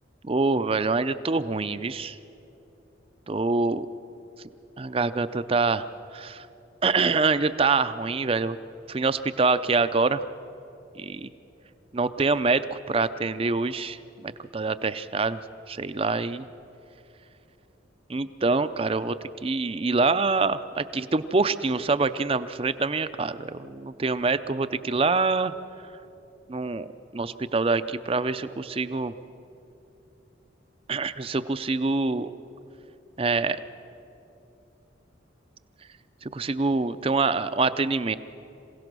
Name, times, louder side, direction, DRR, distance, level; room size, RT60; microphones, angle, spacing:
voice 1, 0.2-2.2 3.3-3.9 4.8-5.9 6.1-6.4 6.8-8.6 8.9-10.2 11.0-11.3 11.9-15.4 15.7-16.4 18.1-25.5 26.5-29.1 30.9-32.3 33.2-33.6 36.2-38.2, right 3 dB, 30° right, 13 dB, 0.5 m, -25 dB
27.0 x 17.0 x 6.1 m, 2.9 s
head